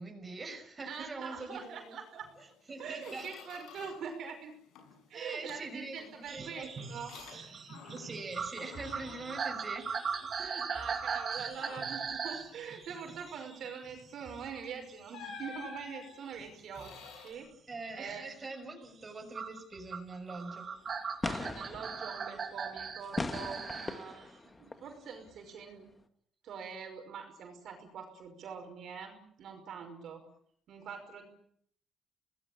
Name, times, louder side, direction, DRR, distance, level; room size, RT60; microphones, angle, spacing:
voice 1, 0.0-2.0 2.4-3.3 5.1-6.9 7.9-9.9 17.7-20.7, right 3 dB, 25° right, 3 dB, 6.2 m, -43 dB
voice 2, 0.9-2.3 2.8-4.6 5.1-7.1 10.4-17.0 17.2-17.5 18.0-18.3 21.2-25.9 26.4-30.2 30.7-31.3, right 6 dB, 60° right, 4 dB, 5.5 m, -44 dB
Squeak, 2.2-2.4 2.7-4.2 4.5-5.0 5.5-8.3 8.6-10.4 10.8-11.0 11.5-12.1 14.2-14.4 15.1-17.3, left 5 dB, 85° left, 7.3 m, -51 dB
sound 1, 6.3-14.6 14.9-17.3 17.7-18.2 19.3-24.0 25.3-25.4, right 6 dB, 40° right, 2.9 m, -40 dB
sound 2, 20.5-20.6 20.9-21.0 21.2-24.9 25.3-25.4, left 2 dB, 15° left, 1.9 m, -39 dB
27.0 x 19.5 x 8.8 m, 0.67 s
cardioid pair, 125°, 0 cm